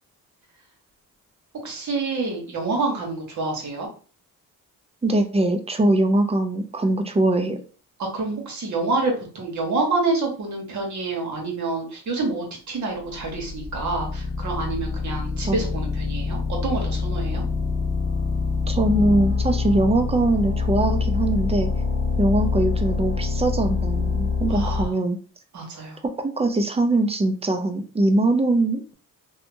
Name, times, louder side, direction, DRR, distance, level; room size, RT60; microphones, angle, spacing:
voice 1, 1.6-3.9 8.0-17.4 24.5-24.9 25.5-26.0, right 3 dB, 55° right, 1 dB, 1.3 m, -27 dB
voice 2, 5.0-7.6 15.5-15.6 18.7-21.7 22.2-25.2 26.2-28.9, right 2 dB, 20° right, 5 dB, 0.4 m, -22 dB
sound 1, 13.0-24.9, left 4 dB, 35° left, 0.5 m, -25 dB
2.7 x 2.3 x 2.6 m, 0.40 s
cardioid pair, 95°, 34 cm